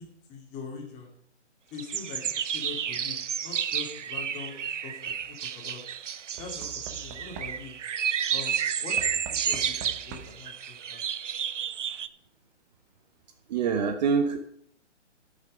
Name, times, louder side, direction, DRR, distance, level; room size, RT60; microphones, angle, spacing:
voice 1, 0.3-1.1 1.7-5.8 6.3-7.8 8.3-11.0, left 5 dB, 20° left, 1 dB, 2.3 m, -43 dB
sound 1, 1.8-12.1, right 8 dB, 75° right, 0.8 m, -31 dB
Knock / Wood, 4.2-4.7 6.4-7.9 9.0-10.5 11.6-11.7 11.9-12.0, right 6 dB, 20° right, 0.8 m, -45 dB
voice 2, 13.5-14.4, right 6 dB, 35° right, 6 dB, 1.0 m, -25 dB
13.5 x 6.8 x 5.1 m, 0.66 s
hypercardioid pair, 145°, 36 cm